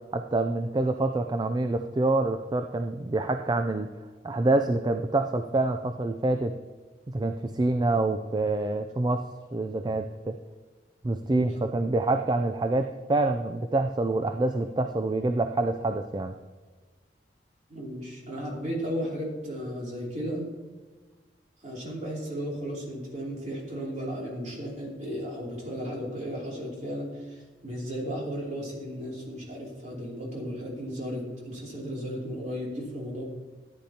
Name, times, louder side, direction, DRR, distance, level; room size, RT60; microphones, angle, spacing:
voice 1, 0.1-3.9 4.2-6.5 7.1-9.2 9.5-10.4 11.0-16.3, right 2 dB, 25° right, 7 dB, 0.4 m, -26 dB
voice 2, 17.7-20.5 21.6-33.2, equal, 40° right, -3 dB, 2.9 m, -35 dB
13.5 x 9.9 x 2.9 m, 1.4 s
head